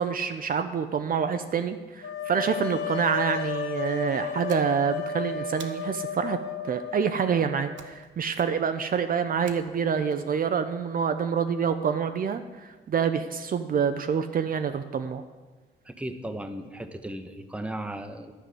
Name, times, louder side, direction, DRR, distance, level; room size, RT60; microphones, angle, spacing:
voice 1, 0.0-6.4 6.6-15.2, right 7 dB, 45° right, 8 dB, 0.6 m, -27 dB
sound 1, 2.0-7.9, left 6 dB, 80° left, 0.9 m, -33 dB
sound 2, 4.5-5.1 5.6-6.2 7.8-8.1 8.3-8.8 9.5-10.1, right 8 dB, 75° right, 0.9 m, -47 dB
voice 2, 15.8-18.3, right 1 dB, 5° right, 8 dB, 0.9 m, -36 dB
11.0 x 4.9 x 7.8 m, 1.3 s
cardioid pair, 90°, 20 cm